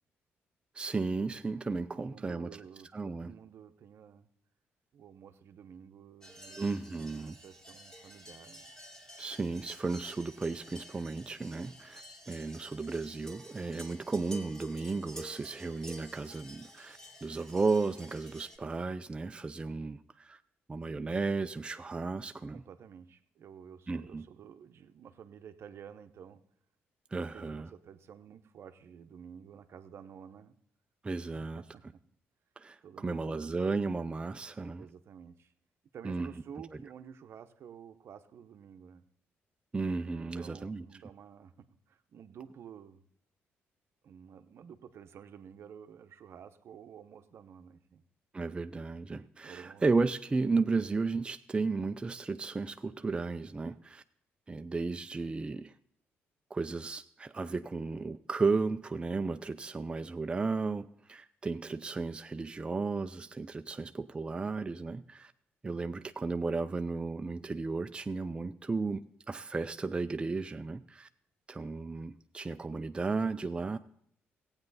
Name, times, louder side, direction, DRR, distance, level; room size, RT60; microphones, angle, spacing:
voice 1, 0.7-2.5 2.9-3.3 6.6-7.4 9.2-20.4 20.7-22.6 23.9-24.3 27.1-27.7 31.0-31.6 32.6-34.9 36.0-36.3 39.7-40.8 48.3-54.0 54.5-55.7 56.5-65.3 65.6-71.1 71.5-73.8, right 3 dB, 20° right, 8 dB, 0.4 m, -34 dB
voice 2, 1.8-4.3 4.9-6.6 6.9-8.7 22.5-26.4 27.3-30.5 31.3-31.8 32.8-33.6 34.8-35.5 35.9-39.0 40.3-43.0 44.0-48.0 49.4-49.9, right 8 dB, 65° right, 9 dB, 0.8 m, -51 dB
sound 1, 6.2-18.6, equal, 15° left, 2.2 m, -50 dB
15.5 x 8.8 x 4.0 m, 0.69 s
cardioid pair, 75°, 5 cm